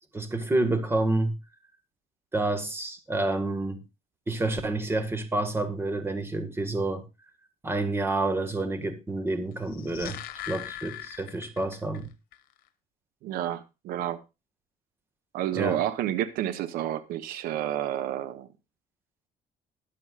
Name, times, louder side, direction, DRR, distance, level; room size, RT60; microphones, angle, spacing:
voice 1, 0.1-1.3 2.3-3.8 4.3-7.0 7.6-10.2 10.5-12.0 15.5-15.8, right 2 dB, 15° right, 1.6 m, -28 dB
sound 1, 9.6-12.0 12.3-12.4, left 13 dB, 80° left, 1.1 m, -40 dB
voice 2, 13.2-14.2 15.3-18.5, right 12 dB, 85° right, 0.9 m, -30 dB
21.0 x 7.0 x 2.4 m
cardioid pair, 130°, 15 cm